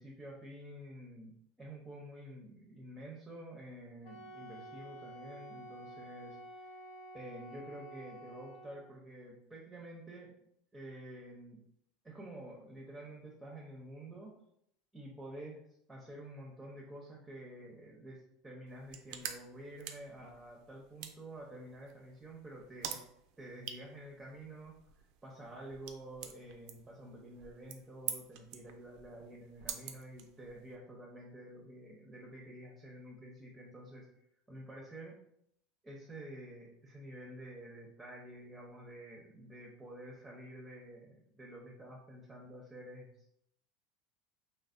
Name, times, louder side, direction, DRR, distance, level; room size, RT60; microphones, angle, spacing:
voice 1, 0.0-6.8 7.1-10.3 10.7-11.6 12.0-14.4 14.9-23.0 23.4-24.7 25.2-34.1 34.5-35.2 35.8-43.3, right 1 dB, 15° right, -2 dB, 0.7 m, -49 dB
Wind instrument woodwind instrument, 4.0-8.9, right 1 dB, 70° left, 0.6 m, -50 dB
sound 1, 18.7-30.8, right 9 dB, 65° right, 0.3 m, -48 dB
3.2 x 2.1 x 2.5 m, 0.74 s
hypercardioid pair, 95°, 0 cm